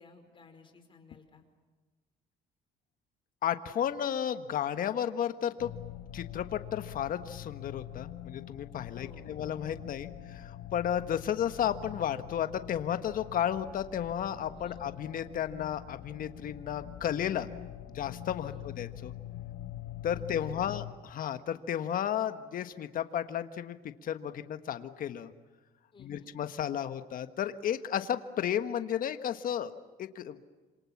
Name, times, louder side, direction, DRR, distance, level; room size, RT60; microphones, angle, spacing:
voice 1, 0.0-1.4 8.9-9.6 14.6-14.8 18.4-18.6 20.2-20.7 25.9-26.3, left 4 dB, 30° left, 7 dB, 5.1 m, -56 dB
voice 2, 3.4-5.7 6.1-17.5 17.9-19.1 20.0-23.8 24.0-25.3 26.0-29.7 30.0-30.6, left 9 dB, 55° left, 9 dB, 1.4 m, -33 dB
sound 1, 5.6-20.9, left 12 dB, 75° left, 2.5 m, -44 dB
27.5 x 27.0 x 7.3 m, 1.3 s
cardioid pair, 110°, 17 cm